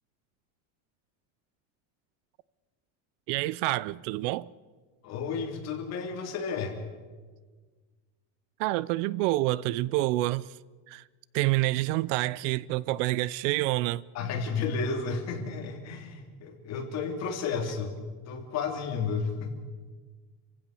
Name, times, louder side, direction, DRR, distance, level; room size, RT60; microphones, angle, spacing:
voice 1, 3.3-4.5 8.6-10.5 10.9-11.0 11.3-14.0, right 18 dB, 65° right, 0.6 m, -27 dB
voice 2, 5.0-6.8 14.1-18.0 18.3-19.6, left 5 dB, 40° left, 3.6 m, -32 dB
28.5 x 16.0 x 6.9 m
cardioid pair, 160°, 41 cm